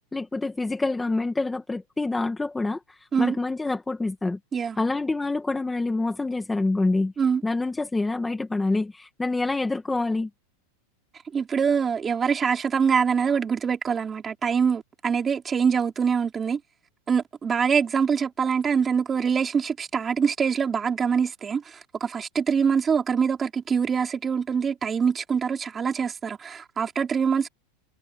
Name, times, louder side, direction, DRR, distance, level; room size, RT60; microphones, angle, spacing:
voice 1, 0.1-4.4 4.8-7.1 7.4-10.3, left 3 dB, 5° left, 2.0 m, -26 dB
voice 2, 11.3-16.6 17.1-27.5, right 6 dB, 20° right, 4.4 m, -24 dB
supercardioid pair, 150°, 0 cm